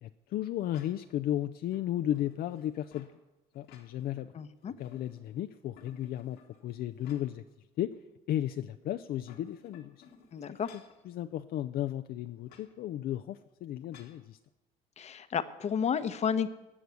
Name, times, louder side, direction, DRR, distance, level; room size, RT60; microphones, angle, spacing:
voice 1, 0.0-3.1 3.5-4.3 4.8-6.4 6.6-7.4 7.8-7.9 8.3-10.0 11.1-14.4, left 12 dB, 65° left, 10 dB, 0.5 m, -34 dB
sound 1, 0.7-1.2 1.7-3.2 3.5-4.3 4.6-5.4 5.8-7.5 7.9-8.0 9.0-11.0 12.5-12.7 13.9-14.2, left 7 dB, 85° left, 1.7 m, -58 dB
voice 2, 4.3-4.7 10.3-10.7 15.0-16.5, left 7 dB, 40° left, 12 dB, 0.9 m, -31 dB
18.5 x 6.3 x 8.1 m, 1.1 s
cardioid pair, 110°, 17 cm